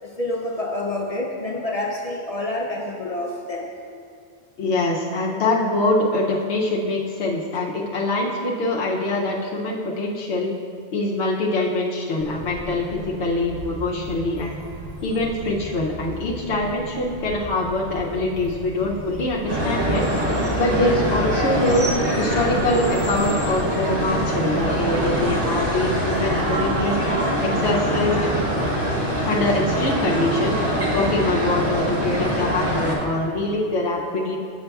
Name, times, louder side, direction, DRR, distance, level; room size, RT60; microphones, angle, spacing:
voice 1, 0.0-3.7, left 1 dB, 50° left, 0 dB, 0.4 m, -28 dB
voice 2, 4.6-10.5 10.9-14.5 15.0-20.1 20.5-21.9 22.2-27.0 27.4-28.3 29.2-30.6 30.9-34.4, left 2 dB, 80° left, -3 dB, 0.9 m, -24 dB
sound 1, 12.2-27.2, equal, 40° right, 0.7 m, -38 dB
sound 2, 19.5-32.9, equal, 25° right, 1.1 m, -23 dB
7.9 x 6.5 x 2.3 m, 2.4 s
omnidirectional pair, 1.1 m